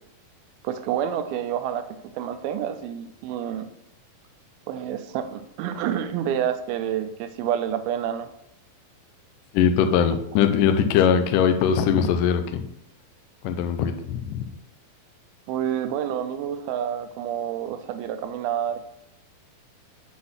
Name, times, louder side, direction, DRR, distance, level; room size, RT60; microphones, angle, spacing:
voice 1, 0.6-1.8 2.1-3.7 4.7-8.3 15.5-18.8, right 9 dB, 90° right, 9 dB, 2.5 m, -28 dB
voice 2, 9.5-12.7 13.4-14.5, left 8 dB, 80° left, 7 dB, 2.0 m, -21 dB
7.8 x 4.2 x 5.6 m, 0.80 s
omnidirectional pair, 4.2 m